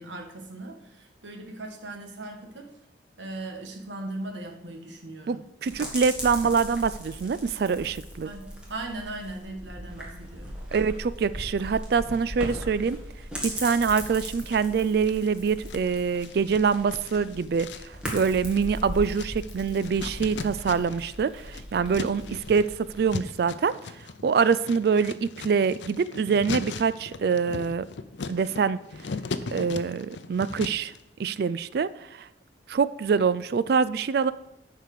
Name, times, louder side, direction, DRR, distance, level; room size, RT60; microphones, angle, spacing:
voice 1, 0.0-2.7 3.2-5.5 8.2-10.6, right 2 dB, 80° right, 2 dB, 1.7 m, -38 dB
voice 2, 5.3-8.3 10.7-13.0 13.4-23.7 24.2-27.8 28.3-28.8 29.5-30.9 31.2-32.3 32.7-34.3, right 5 dB, 55° right, 15 dB, 0.3 m, -25 dB
sound 1, 5.7-23.1, equal, 5° right, 1.8 m, -39 dB
sound 2, 14.5-15.3 15.7-21.1 21.4-31.0, left 4 dB, 75° left, 0.6 m, -38 dB
10.5 x 4.7 x 6.7 m, 0.85 s
head